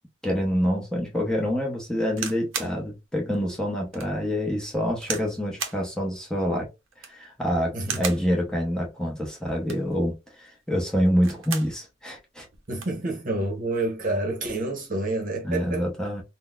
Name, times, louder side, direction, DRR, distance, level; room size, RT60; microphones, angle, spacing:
voice 1, 0.2-6.7 7.1-12.5 15.4-16.2, equal, 5° left, 0.9 m, -26 dB
sound 1, 2.1-2.8 3.3-3.4 3.9-4.1 5.0-5.3 5.6-5.8 6.9-7.3 7.8-8.3 9.5-9.9 11.1-11.8 12.2-12.3 12.5-13.0 13.8-14.1, right 7 dB, 90° right, 0.7 m, -34 dB
voice 2, 7.7-8.1 12.7-15.9, right 2 dB, 45° right, 1.0 m, -28 dB
3.8 x 2.2 x 2.4 m
head